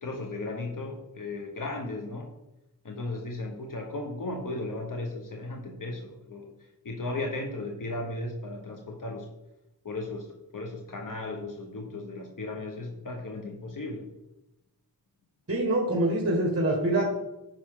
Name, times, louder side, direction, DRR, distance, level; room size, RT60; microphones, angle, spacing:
voice 1, 0.0-2.3 2.8-6.5 6.8-9.3 9.8-10.3 10.5-14.0, left 2 dB, 65° left, 2 dB, 1.1 m, -35 dB
voice 2, 15.5-17.0, right 1 dB, 40° right, 0 dB, 1.6 m, -25 dB
10.0 x 5.9 x 3.7 m, 0.94 s
wide cardioid pair, 65°, 35 cm